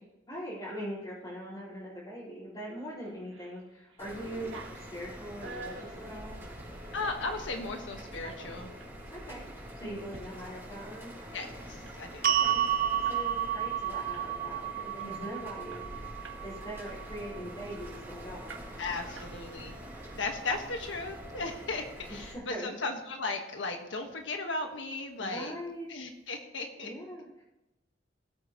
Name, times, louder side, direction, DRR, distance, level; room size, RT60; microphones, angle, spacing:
voice 1, 0.3-6.4 9.1-11.1 12.4-12.6 13.1-16.1 16.4-18.6 19.0-19.2 19.8-20.1 22.3-22.7 25.2-25.9 26.8-27.4, equal, 25° left, -13 dB, 4.4 m, -42 dB
sound 1, 3.0-3.6 3.9-7.5 8.0-8.9 9.4-9.5 9.9-10.2 10.5-10.6 10.9-13.2 13.6-13.8 14.1-14.6 15.0-15.1 15.4-16.5 16.8-18.0 18.5-18.9 19.1-19.8, right 3 dB, 80° right, 1.8 m, -49 dB
sound 2, 4.0-22.3, equal, 15° right, 4.5 m, -45 dB
voice 2, 6.9-8.7 9.8-10.0 11.3-12.3 15.0-15.4 18.8-19.8 20.1-25.5 25.9-26.9, left 3 dB, 80° left, 4 dB, 1.5 m, -36 dB
sound 3, 12.2-18.5, right 10 dB, 50° right, 0.6 m, -32 dB
19.5 x 8.4 x 3.0 m, 0.98 s
head